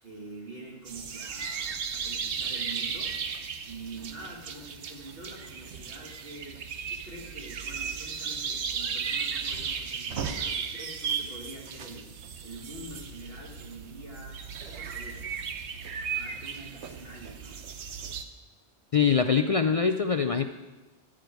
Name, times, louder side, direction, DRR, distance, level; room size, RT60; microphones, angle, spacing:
voice 1, 0.0-3.2 3.6-12.1 12.4-15.3 16.0-17.6, right 2 dB, 55° right, -2 dB, 1.7 m, -45 dB
sound 1, 0.9-18.2, right 6 dB, 75° right, 1.1 m, -35 dB
voice 2, 18.9-20.4, left 6 dB, 55° left, 7 dB, 0.4 m, -23 dB
14.0 x 5.1 x 9.3 m, 1.2 s
omnidirectional pair, 1.2 m